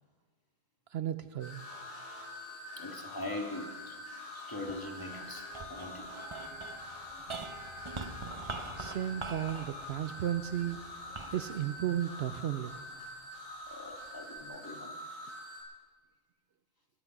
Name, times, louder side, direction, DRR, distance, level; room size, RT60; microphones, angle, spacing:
voice 1, 0.9-1.6 8.7-10.9 11.3-12.7, right 11 dB, 65° right, 11 dB, 0.8 m, -34 dB
sound 1, 1.4-15.6, left 2 dB, 80° left, 5.8 m, -45 dB
voice 2, 2.8-4.0 4.3-6.2 13.7-14.9, left 2 dB, 20° left, 1 dB, 1.9 m, -42 dB
sound 2, 4.6-13.1 13.7-14.4, right 3 dB, 25° right, 0.9 m, -45 dB
sound 3, 6.0-11.9, left 1 dB, 50° left, 5.7 m, -63 dB
23.0 x 10.0 x 6.0 m, 1.4 s
omnidirectional pair, 1.2 m